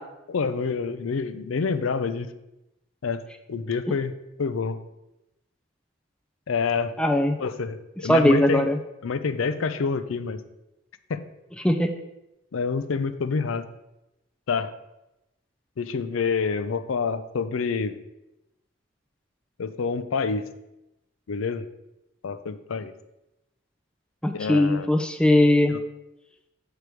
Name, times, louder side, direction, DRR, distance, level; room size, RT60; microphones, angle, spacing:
voice 1, 0.3-2.3 3.0-3.2 3.5-4.1 4.4-4.8 6.5-6.9 7.4-8.7 9.0-10.4 11.1-11.2 12.5-13.7 14.5-14.7 15.8-18.0 19.6-20.5 21.3-21.7 22.2-22.9 24.3-24.9 25.7-25.8, left 5 dB, 90° left, 12 dB, 0.5 m, -27 dB
voice 2, 7.0-7.4 8.1-8.8 11.6-11.9 24.2-25.7, left 1 dB, 5° left, 7 dB, 0.4 m, -19 dB
6.8 x 4.6 x 4.8 m, 0.92 s
head